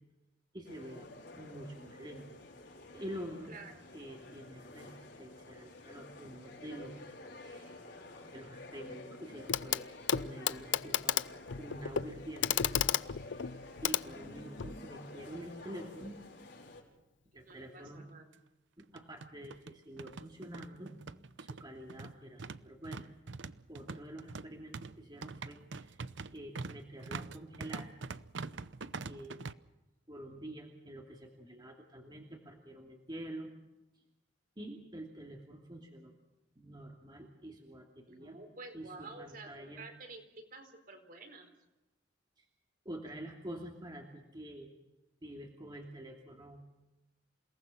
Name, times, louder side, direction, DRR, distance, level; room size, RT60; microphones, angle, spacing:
voice 1, 0.5-1.1 1.4-2.3 2.9-3.6 3.9-7.8 8.3-9.9 10.1-11.3 11.6-13.0 13.8-16.2 17.3-18.1 18.8-20.9 21.4-23.1 23.7-26.0 26.3-27.9 29.0-29.4 30.1-33.5 34.6-36.1 36.6-38.4 38.7-39.8 42.4-42.5 42.8-44.7 45.2-46.7, right 1 dB, 25° right, 0 dB, 2.7 m, -47 dB
sound 1, 0.6-16.8, left 2 dB, 65° left, 5.7 m, -51 dB
Clock, 9.5-9.8 10.1-14.8 16.0-16.1, left 9 dB, 90° left, 0.6 m, -33 dB
voice 2, 17.3-18.3 38.1-41.5, right 3 dB, 50° right, 5 dB, 4.4 m, -50 dB
sound 2, 17.5-17.6 17.9-18.0 18.8-29.5, right 4 dB, 80° right, 0.8 m, -44 dB
28.5 x 19.0 x 5.9 m, 1.0 s
head